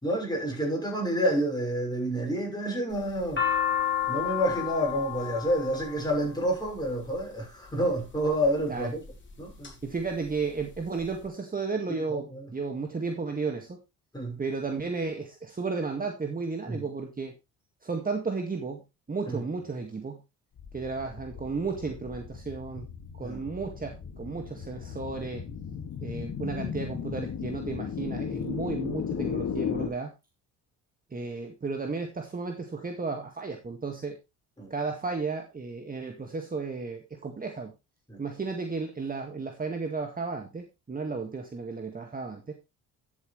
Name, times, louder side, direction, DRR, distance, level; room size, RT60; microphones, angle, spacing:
voice 1, 0.0-3.4 4.1-9.0 9.4-9.7 11.9-12.5 14.1-14.4 16.7-16.8 19.3-19.4 23.2-23.5 29.7-29.9 34.6-34.7 38.1-38.2, equal, 10° left, 6.2 m, -29 dB
sound 1, 2.9-7.2 8.0-8.5 9.1-9.7 10.1-10.2 10.3-11.2, left 10 dB, 30° left, 3.8 m, -31 dB
voice 2, 9.8-12.3 12.5-13.8 14.4-17.3 17.8-18.8 19.1-20.2 20.7-22.9 23.1-25.4 26.0-30.1 31.1-34.2 34.7-37.7 38.2-42.5, right 4 dB, 25° right, 1.9 m, -33 dB
sound 2, 20.6-29.9, left 7 dB, 50° left, 2.2 m, -36 dB
12.0 x 7.9 x 3.3 m
supercardioid pair, 85°, 36 cm